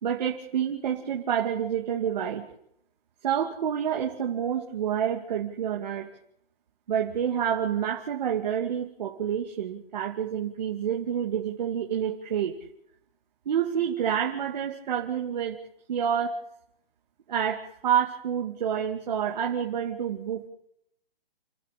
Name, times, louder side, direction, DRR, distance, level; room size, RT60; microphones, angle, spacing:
voice 1, 0.0-2.5 3.2-6.1 6.9-12.6 13.5-15.6 15.9-16.4 17.3-20.5, right 8 dB, 45° right, 1 dB, 2.4 m, -28 dB
29.5 x 12.5 x 8.3 m, 0.74 s
hypercardioid pair, 170°, 29 cm